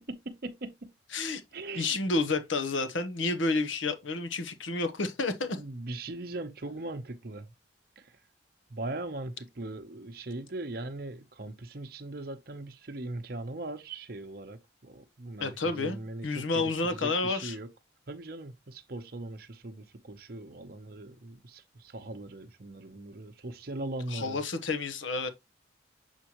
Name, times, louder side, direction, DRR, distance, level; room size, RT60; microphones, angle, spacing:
voice 1, 0.3-0.9 1.5-2.0 5.5-7.5 8.0-8.1 8.7-16.7 17.0-17.7 18.1-24.4, right 2 dB, 50° right, 0.8 m, -40 dB
voice 2, 1.7-5.6 15.4-17.6 24.1-25.3, left 3 dB, 85° left, 0.9 m, -30 dB
7.4 x 4.4 x 3.0 m
head